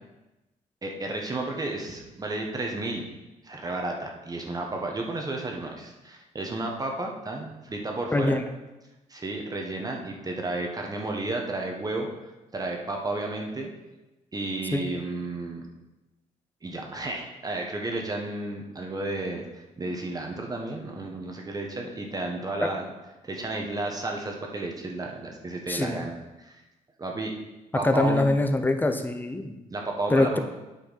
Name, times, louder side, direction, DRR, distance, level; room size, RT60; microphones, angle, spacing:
voice 1, 0.8-3.1 3.4-8.3 9.1-12.1 12.5-13.7 14.3-15.7 16.6-22.9 23.2-26.6 27.0-27.3 27.7-28.3 29.7-30.4, right 2 dB, 25° right, 1 dB, 1.2 m, -32 dB
voice 2, 8.1-8.4 14.7-14.8 22.6-22.7 25.7-26.0 27.8-29.5 30.1-30.4, left 2 dB, 15° left, 7 dB, 0.8 m, -24 dB
8.8 x 5.8 x 4.2 m, 1.0 s
cardioid pair, 100°, 14 cm